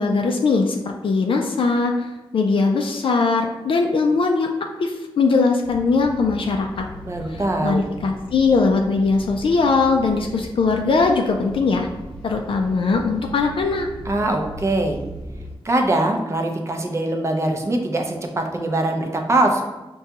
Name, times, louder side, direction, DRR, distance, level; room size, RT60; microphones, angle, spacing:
voice 1, 0.0-2.1 2.3-4.5 4.8-6.8 7.3-11.9 12.2-13.9, left 4 dB, 60° left, 2 dB, 0.3 m, -20 dB
sound 1, 5.6-15.6, equal, 10° left, 0.9 m, -38 dB
voice 2, 7.0-7.8 14.0-15.0 15.6-19.6, right 2 dB, 30° right, 3 dB, 0.5 m, -22 dB
5.8 x 2.3 x 2.8 m, 1.0 s
wide cardioid pair, 145°, 10 cm